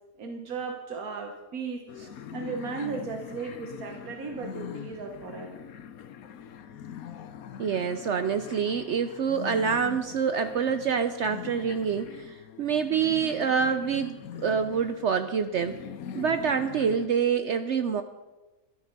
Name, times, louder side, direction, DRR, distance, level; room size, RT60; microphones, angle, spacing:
voice 1, 0.2-1.8 2.3-5.6, right 5 dB, 90° right, 4 dB, 1.5 m, -36 dB
sound 1, 1.9-17.1, left 8 dB, 85° left, 1.2 m, -42 dB
voice 2, 7.6-15.8 16.1-18.0, right 6 dB, 60° right, 9 dB, 0.9 m, -26 dB
13.5 x 12.5 x 5.2 m, 1.1 s
omnidirectional pair, 1.5 m